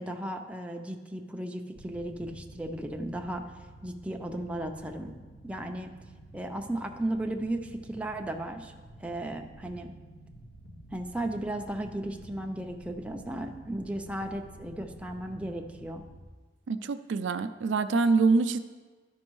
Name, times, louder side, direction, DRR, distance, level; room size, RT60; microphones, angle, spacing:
voice 1, 0.0-3.4 3.8-5.1 5.4-5.9 6.3-8.7 9.0-9.9 10.9-16.0, right 1 dB, 5° right, 3 dB, 0.5 m, -35 dB
sound 1, 1.8-16.2, right 1 dB, 80° left, 1.0 m, -50 dB
voice 2, 16.7-18.6, right 4 dB, 80° right, 10 dB, 0.4 m, -25 dB
12.5 x 5.3 x 3.1 m, 1.4 s
head